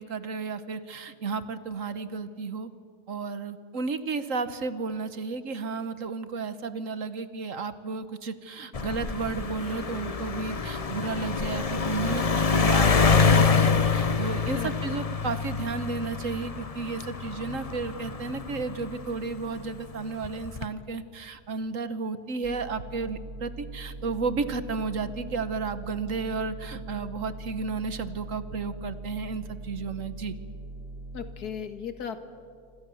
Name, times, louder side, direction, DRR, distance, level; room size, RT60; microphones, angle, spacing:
voice 1, 0.0-2.7 3.1-30.4, right 4 dB, 55° right, 12 dB, 1.4 m, -33 dB
sound 1, 8.7-19.5 20.2-20.7, left 5 dB, 30° left, 0.7 m, -26 dB
sound 2, 22.4-31.3, right 2 dB, 85° right, 4.9 m, -41 dB
voice 2, 31.1-32.2, left 7 dB, 75° left, 9 dB, 2.1 m, -36 dB
26.5 x 26.0 x 7.1 m, 2.2 s
omnidirectional pair, 1.7 m